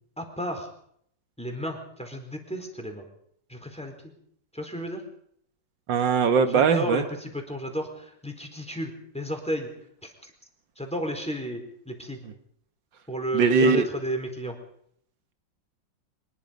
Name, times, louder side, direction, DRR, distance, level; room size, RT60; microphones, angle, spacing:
voice 1, 0.2-0.7 1.4-3.0 3.5-3.9 4.5-5.0 6.5-9.7 10.0-10.3 10.8-12.2 13.1-14.6, equal, 5° left, 3 dB, 4.3 m, -33 dB
voice 2, 5.9-7.0 13.3-13.8, right 5 dB, 85° right, 9 dB, 2.0 m, -20 dB
24.5 x 21.0 x 5.3 m, 0.68 s
omnidirectional pair, 2.0 m